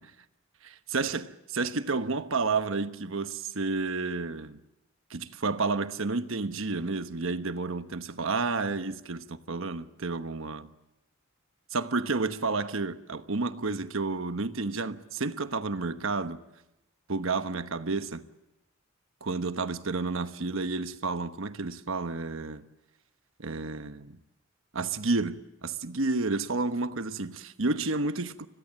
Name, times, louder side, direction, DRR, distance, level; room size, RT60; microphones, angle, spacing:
voice 1, 0.6-4.6 5.1-10.7 11.7-16.4 17.1-18.3 19.2-22.7 23.4-24.2 24.7-28.5, right 3 dB, 70° right, 1.1 m, -31 dB
30.0 x 21.5 x 7.6 m
head